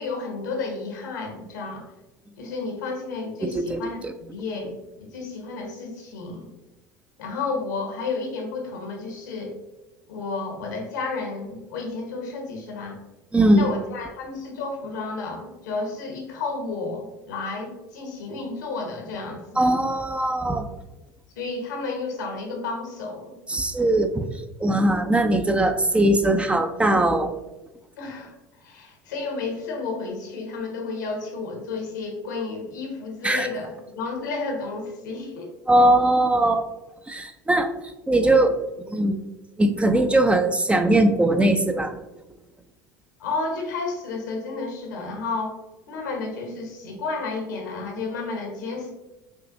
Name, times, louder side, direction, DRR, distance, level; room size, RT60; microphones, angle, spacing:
voice 1, 0.0-1.8 2.4-6.5 7.2-9.5 10.1-13.0 13.5-19.7 21.4-23.3 28.0-28.3 28.6-35.5 43.2-45.6 45.9-48.9, left 3 dB, 80° left, 1 dB, 1.1 m, -32 dB
voice 2, 3.4-4.1 13.3-13.7 19.6-20.7 23.5-24.3 24.6-27.3 33.2-33.5 35.7-36.6 37.1-37.7 38.1-38.6 38.9-39.2 39.6-42.0, right 1 dB, 10° right, 7 dB, 0.4 m, -20 dB
6.3 x 2.5 x 2.5 m, 1.0 s
hypercardioid pair, 75°, 9 cm